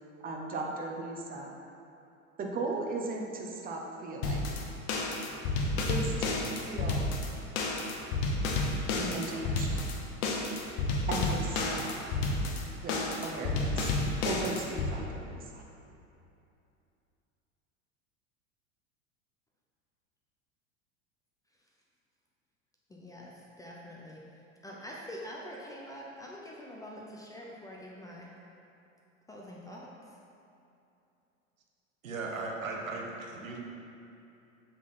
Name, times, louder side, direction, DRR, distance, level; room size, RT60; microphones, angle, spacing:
voice 1, 0.2-1.5 2.4-4.5 5.9-7.1 9.0-9.9 11.1-12.1 12.8-15.7, right 3 dB, 20° right, 0 dB, 0.8 m, -37 dB
sound 1, 4.2-14.9, left 2 dB, 50° left, 0.9 m, -31 dB
voice 2, 22.9-24.2 24.6-28.3 29.3-29.9, equal, 10° left, -3 dB, 0.5 m, -45 dB
voice 3, 32.0-33.6, right 3 dB, 75° right, 0 dB, 1.0 m, -37 dB
7.3 x 3.8 x 4.1 m, 2.7 s
figure-of-eight pair, 80°, 40 cm